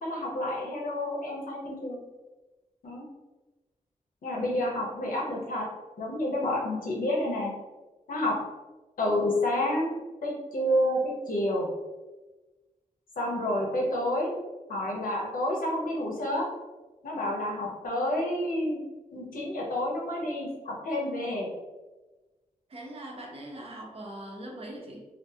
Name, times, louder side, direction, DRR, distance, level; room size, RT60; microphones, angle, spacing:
voice 1, 0.0-2.0 2.8-3.0 4.2-5.6 6.0-7.5 8.1-8.4 9.0-11.7 13.2-14.3 14.7-16.5 17.0-18.8 19.1-21.5, left 1 dB, 85° left, -2 dB, 0.7 m, -29 dB
voice 2, 22.7-25.1, right 1 dB, 45° right, -1 dB, 0.6 m, -41 dB
2.5 x 2.4 x 2.6 m, 1.2 s
wide cardioid pair, 130°, 14 cm